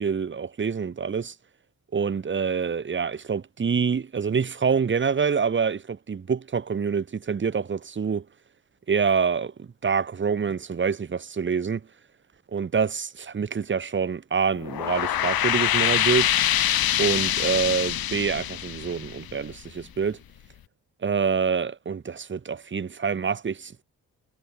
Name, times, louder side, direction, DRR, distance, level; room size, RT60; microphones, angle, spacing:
voice 1, 0.0-1.3 1.9-8.3 8.9-11.8 12.5-16.3 17.0-20.2 21.0-23.8, right 6 dB, 30° right, 2.0 m, -26 dB
sound 1, 14.6-19.8, left 11 dB, 80° left, 2.0 m, -25 dB
wide cardioid pair, 165°, 36 cm